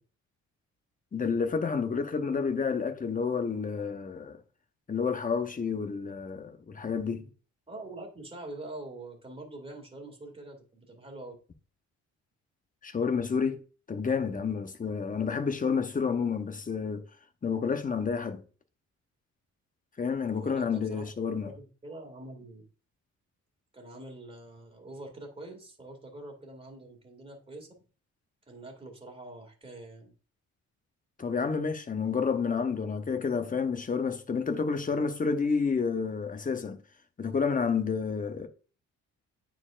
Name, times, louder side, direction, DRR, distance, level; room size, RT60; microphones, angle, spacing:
voice 1, 1.1-4.4 4.9-7.3 12.8-13.6 13.9-17.0 17.4-18.4 20.0-21.5 31.2-36.8 37.2-38.5, left 5 dB, 25° left, 0.9 m, -30 dB
voice 2, 7.7-11.3 20.3-21.1 21.3-22.7 23.7-27.7 28.5-30.1, right 2 dB, 20° right, 2.3 m, -45 dB
9.5 x 4.5 x 2.5 m
cardioid pair, 90°, 30 cm